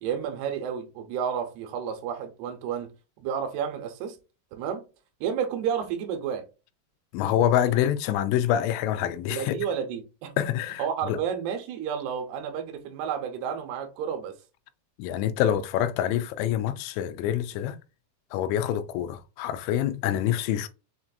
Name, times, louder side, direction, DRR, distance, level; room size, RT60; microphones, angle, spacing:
voice 1, 0.0-2.9 3.2-4.2 4.5-4.8 5.2-6.5 9.3-10.4 10.8-14.4, right 8 dB, 80° right, 2.6 m, -31 dB
voice 2, 7.1-9.5 10.4-11.2 15.0-17.8 18.3-20.7, left 11 dB, 85° left, 2.8 m, -26 dB
6.5 x 2.5 x 2.5 m
omnidirectional pair, 5.1 m